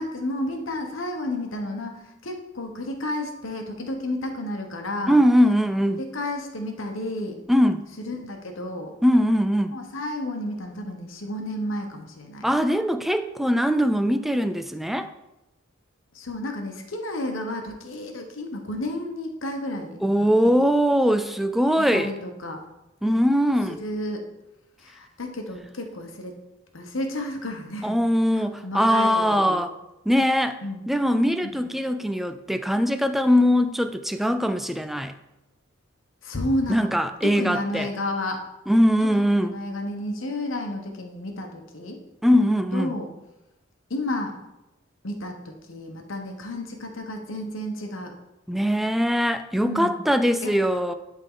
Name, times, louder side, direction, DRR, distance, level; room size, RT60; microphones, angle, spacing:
voice 1, 0.0-5.2 6.0-7.4 8.0-9.0 9.7-12.4 16.1-20.3 21.8-22.6 23.7-24.3 24.8-26.4 26.7-28.0 28.3-29.6 30.6-30.9 31.4-31.7 36.2-36.9 37.2-38.5 39.5-42.0 42.7-43.1 43.9-44.4 45.0-48.2 49.6-50.0 50.4-50.6, left 1 dB, 75° left, 4 dB, 1.1 m, -31 dB
voice 2, 5.1-6.0 7.5-7.9 9.0-9.8 12.4-15.1 20.0-22.1 23.0-23.8 27.8-29.7 30.1-30.6 30.9-35.1 36.7-37.9 38.7-39.5 42.2-42.9 48.5-50.9, equal, ahead, 9 dB, 0.3 m, -21 dB
11.0 x 3.7 x 3.8 m, 0.96 s
head